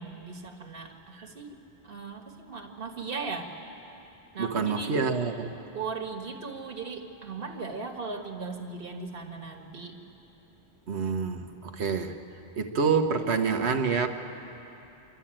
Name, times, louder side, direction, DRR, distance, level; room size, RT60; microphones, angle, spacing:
voice 1, 0.0-1.6 1.8-3.5 4.3-4.9 5.7-10.0, right 4 dB, 60° right, 3 dB, 1.8 m, -38 dB
voice 2, 4.4-5.6 10.9-12.2 12.6-14.1, right 5 dB, 85° right, 6 dB, 1.4 m, -27 dB
26.5 x 13.0 x 8.9 m, 2.9 s
omnidirectional pair, 1.1 m